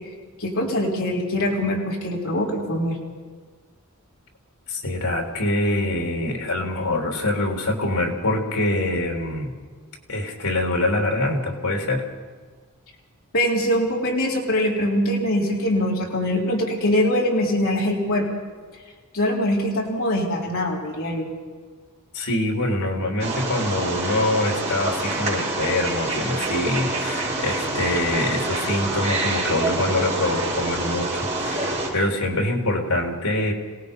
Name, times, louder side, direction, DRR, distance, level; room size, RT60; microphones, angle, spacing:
voice 1, 0.4-3.0 13.3-18.3 19.1-21.3, left 1 dB, 65° left, -3 dB, 3.8 m, -23 dB
voice 2, 4.7-9.5 10.1-12.1 22.1-33.5, left 1 dB, 90° left, 2 dB, 3.5 m, -24 dB
Wild animals, 23.2-31.9, right 2 dB, 30° right, 5.9 m, -26 dB
26.0 x 18.0 x 5.4 m, 1.5 s
head